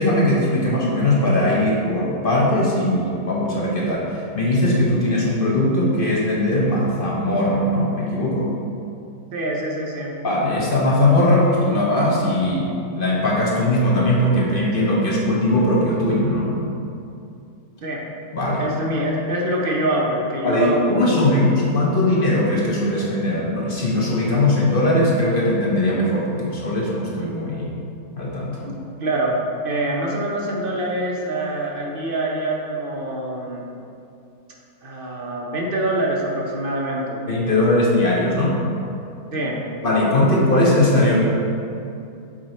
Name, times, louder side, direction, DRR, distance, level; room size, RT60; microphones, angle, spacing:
voice 1, 0.0-8.5 10.2-16.5 18.3-18.6 20.4-27.7 28.2-28.7 37.3-38.6 39.8-41.2, left 1 dB, 45° left, -4 dB, 0.8 m, -19 dB
voice 2, 9.3-10.1 17.8-18.0 18.6-21.6 28.6-29.4 29.6-33.6 34.8-37.2 39.3-39.6, right 1 dB, 50° right, -3 dB, 0.7 m, -25 dB
7.3 x 3.1 x 4.2 m, 2.6 s
omnidirectional pair, 1.6 m